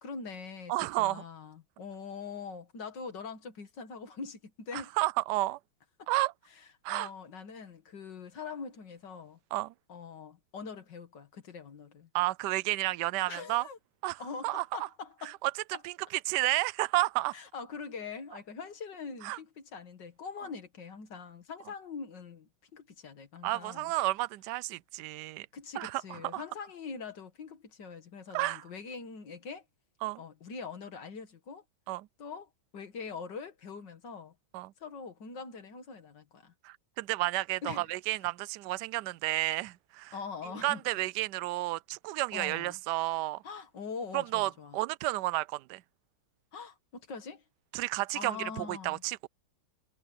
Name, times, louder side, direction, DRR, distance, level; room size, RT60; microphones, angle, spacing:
voice 1, 0.0-0.7 1.0-4.9 6.0-6.1 6.9-9.4 9.9-12.1 13.3-13.8 14.2-15.4 15.7-15.8 17.3-23.9 25.5-29.6 30.2-31.6 32.2-34.3 34.8-36.5 37.6-37.9 40.1-40.8 42.3-42.8 43.4-44.8 46.5-47.4 48.1-49.0, left 5 dB, 55° left, 2.3 m, -43 dB
voice 2, 0.7-1.2 4.7-5.6 6.1-6.3 6.8-7.1 9.5-9.7 12.1-13.7 14.0-14.2 14.4-14.9 15.2-15.5 15.8-15.9 16.3-17.4 19.2-19.4 23.4-25.5 25.8-26.4 28.3-28.6 30.0-30.2 31.9-32.1 34.5-34.7 36.6-40.1 40.6-43.4 44.1-45.8 47.7-49.3, right 18 dB, 75° right, 1.0 m, -31 dB
omnidirectional pair, 2.3 m